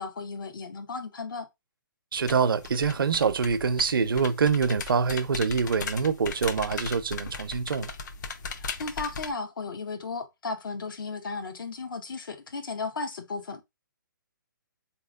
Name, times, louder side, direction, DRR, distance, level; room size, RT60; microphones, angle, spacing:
voice 1, 0.0-1.5 8.5-13.6, left 4 dB, 75° left, 1.0 m, -35 dB
sound 1, 2.1-9.3, left 5 dB, 60° left, 0.7 m, -38 dB
voice 2, 2.1-7.9, right 5 dB, 85° right, 0.5 m, -25 dB
4.1 x 2.9 x 2.4 m
hypercardioid pair, 145°, 11 cm